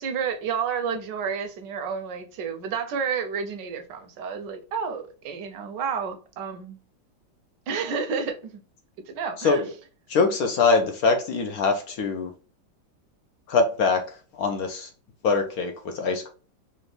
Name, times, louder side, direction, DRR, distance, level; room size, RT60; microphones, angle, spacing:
voice 1, 0.0-6.8 7.7-8.6 9.1-9.6, right 6 dB, 75° right, 7 dB, 1.2 m, -30 dB
voice 2, 10.1-12.3 13.5-14.0 14.3-14.9 15.2-16.3, left 4 dB, 70° left, 5 dB, 0.9 m, -23 dB
4.3 x 2.6 x 3.2 m, 0.37 s
omnidirectional pair, 2.1 m